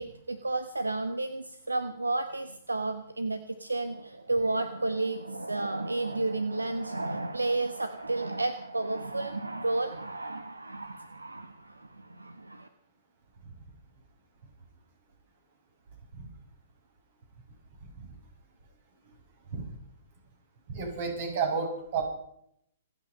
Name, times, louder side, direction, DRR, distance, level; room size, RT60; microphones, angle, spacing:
voice 1, 0.0-12.7, right 2 dB, 85° right, 11 dB, 1.1 m, -32 dB
voice 2, 20.7-22.0, right 5 dB, 55° right, 2 dB, 6.9 m, -31 dB
27.0 x 9.4 x 5.5 m, 0.69 s
figure-of-eight pair, 115°, 0 cm